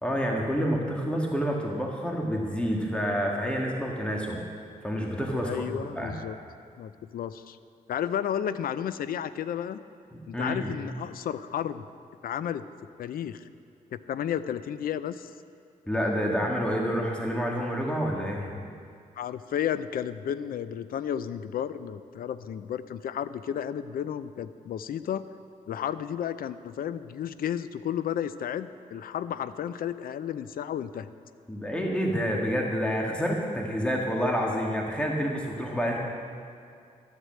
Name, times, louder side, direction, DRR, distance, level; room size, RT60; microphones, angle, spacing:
voice 1, 0.0-4.4 4.8-6.1 10.3-10.7 15.9-18.7 31.5-36.0, equal, 5° left, -1 dB, 1.9 m, -28 dB
voice 2, 5.4-6.4 6.8-7.6 7.9-9.8 10.3-11.8 12.2-12.6 13.0-13.5 13.9-15.3 19.2-25.2 25.7-31.1, left 9 dB, 80° left, 14 dB, 0.5 m, -32 dB
13.0 x 8.1 x 7.6 m, 2.3 s
cardioid pair, 80°, 15 cm